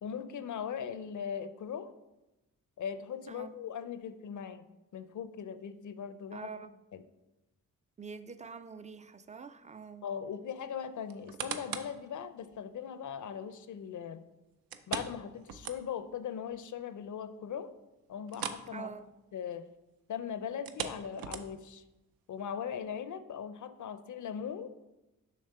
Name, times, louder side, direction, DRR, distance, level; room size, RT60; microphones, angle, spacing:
voice 1, 0.0-1.9 2.8-4.7 4.9-6.5 6.9-7.0 10.0-14.2 14.9-17.7 18.1-18.9 19.3-19.7 20.1-21.8 22.3-24.7, left 7 dB, 60° left, 12 dB, 0.5 m, -39 dB
voice 2, 6.3-6.7 8.0-10.1 18.7-19.1, right 5 dB, 20° right, 12 dB, 0.4 m, -45 dB
sound 1, 11.1-12.0 12.5-12.6 14.7-16.2 16.5-16.6 17.0-17.1 18.3-18.7 19.0-19.2 20.5-21.8 22.4-22.5, right 8 dB, 85° right, 0.6 m, -40 dB
6.6 x 3.3 x 5.5 m, 1.0 s
cardioid pair, 65°, 34 cm